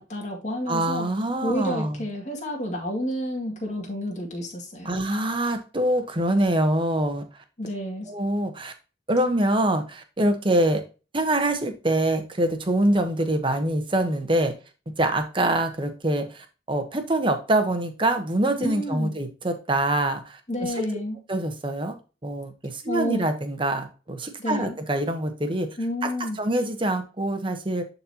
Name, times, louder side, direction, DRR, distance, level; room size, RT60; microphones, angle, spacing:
voice 1, 0.0-1.1 1.4-4.9 7.6-8.1 18.6-19.2 20.5-21.2 22.9-23.3 24.4-24.7 25.8-26.4, equal, 40° left, -1 dB, 2.2 m, -30 dB
voice 2, 0.7-2.0 4.8-7.2 8.1-8.7 9.1-10.8 11.1-14.5 14.9-20.8 21.3-22.0 22.2-25.8 26.0-26.1 26.4-27.8, right 1 dB, 30° right, 7 dB, 1.1 m, -25 dB
11.0 x 4.2 x 2.9 m, 0.32 s
head